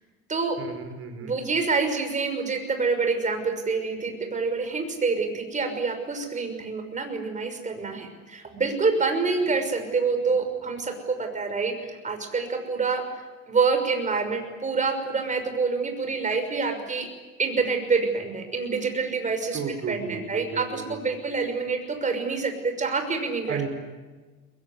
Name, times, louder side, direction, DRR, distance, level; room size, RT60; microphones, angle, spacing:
voice 1, 0.6-1.3 19.5-21.0 23.5-23.7, right 6 dB, 50° right, 7 dB, 5.0 m, -33 dB
voice 2, 1.2-13.0 13.5-17.1 17.4-19.6 19.9-23.6, right 4 dB, 25° right, 5 dB, 6.0 m, -27 dB
23.5 x 21.5 x 9.8 m, 1.3 s
cardioid pair, 130°, 29 cm